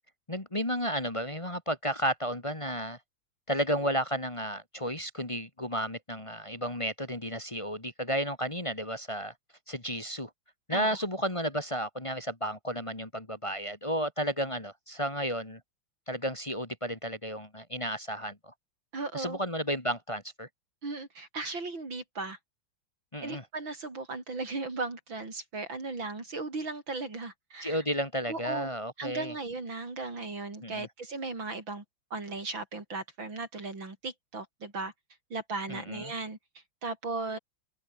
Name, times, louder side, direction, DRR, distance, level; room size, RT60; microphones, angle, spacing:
voice 1, 0.3-3.0 3.5-9.3 9.7-10.3 10.7-15.6 16.1-18.5 19.1-20.5 23.1-23.4 27.6-29.3 30.6-30.9 35.7-36.1, equal, 15° left, 2.1 m, -32 dB
voice 2, 18.9-19.4 20.8-22.4 23.2-27.8 28.3-28.7 29.0-31.8 32.1-34.9 35.3-36.4 36.8-37.4, right 3 dB, 85° right, 6.1 m, -36 dB
omnidirectional pair, 2.1 m